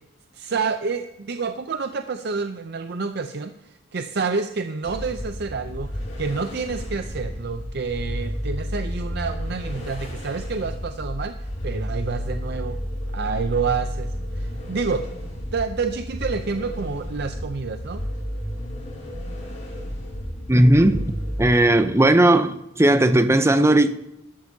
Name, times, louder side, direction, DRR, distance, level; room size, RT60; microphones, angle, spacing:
voice 1, 0.3-5.9 6.2-11.3 11.6-12.8 13.1-15.1 15.5-18.0, right 4 dB, 55° right, 0.5 m, -28 dB
sound 1, 4.8-21.5, equal, 40° left, 4.4 m, -32 dB
voice 2, 20.5-21.1 21.4-24.0, right 1 dB, 15° right, 0.6 m, -16 dB
13.0 x 12.5 x 2.7 m
head